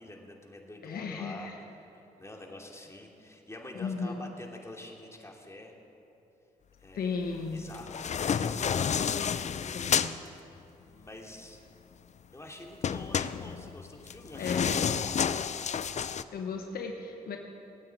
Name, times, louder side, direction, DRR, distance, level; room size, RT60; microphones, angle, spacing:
voice 1, 0.0-1.5 1.8-5.7 6.8-7.2 7.5-8.6 10.8-11.6 12.3-14.9, left 1 dB, 15° left, 0 dB, 3.0 m, -47 dB
voice 2, 0.8-1.6 3.7-4.2 6.9-7.7 9.7-10.1 14.4-14.7 16.3-17.4, left 5 dB, 70° left, 3 dB, 1.2 m, -35 dB
sound 1, 7.7-10.2 12.8-16.2, left 7 dB, 45° left, 0.6 m, -30 dB
18.0 x 9.0 x 8.6 m, 2.9 s
supercardioid pair, 60°, 16 cm